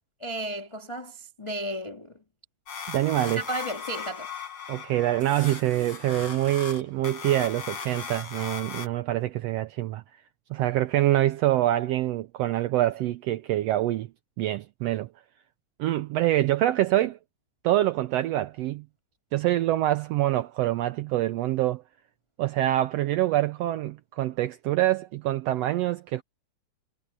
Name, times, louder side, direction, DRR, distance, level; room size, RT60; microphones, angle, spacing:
voice 1, 0.2-2.2 3.3-4.3, right 1 dB, 15° left, 1.2 m, -34 dB
sound 1, 2.7-8.9, left 6 dB, 45° left, 4.7 m, -38 dB
voice 2, 2.9-3.4 4.7-10.0 10.5-14.1 14.4-15.1 15.8-17.2 17.6-18.8 19.3-21.8 22.4-26.2, right 14 dB, 85° right, 1.4 m, -25 dB
omnidirectional pair, 3.5 m